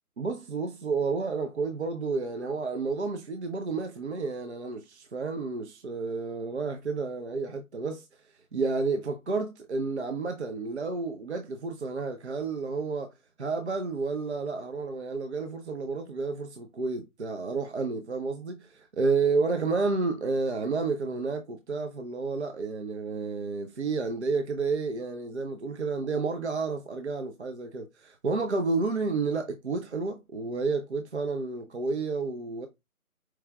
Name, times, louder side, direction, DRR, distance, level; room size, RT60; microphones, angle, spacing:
voice 1, 0.2-8.1 8.5-13.1 13.4-32.7, right 4 dB, 50° right, 0.6 m, -30 dB
4.6 x 3.0 x 2.3 m
figure-of-eight pair, 150°, 43 cm